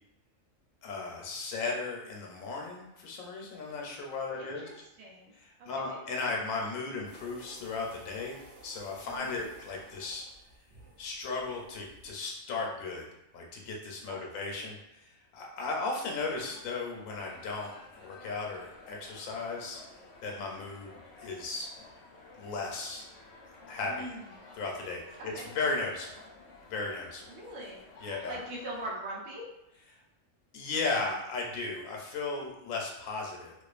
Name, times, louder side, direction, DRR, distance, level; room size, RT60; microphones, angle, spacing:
voice 1, 0.8-4.8 5.4-8.4 8.6-10.2 11.0-13.1 13.3-19.8 20.2-20.9 21.2-21.7 22.4-23.0 23.7-24.1 24.5-26.1 26.7-27.2 28.0-28.4 30.5-33.5, left 3 dB, 85° left, -1 dB, 1.0 m, -36 dB
voice 2, 4.3-5.3 5.6-6.0 9.1-9.5 14.1-14.2 23.8-24.2 25.2-25.5 27.3-27.8 28.3-29.5, right 1 dB, 75° right, -3 dB, 1.0 m, -42 dB
sound 1, 7.0-12.1, right 2 dB, 60° right, 0.7 m, -55 dB
sound 2, 16.1-28.9, left 3 dB, 65° left, 0.8 m, -53 dB
2.4 x 2.4 x 2.3 m, 0.88 s
omnidirectional pair, 1.4 m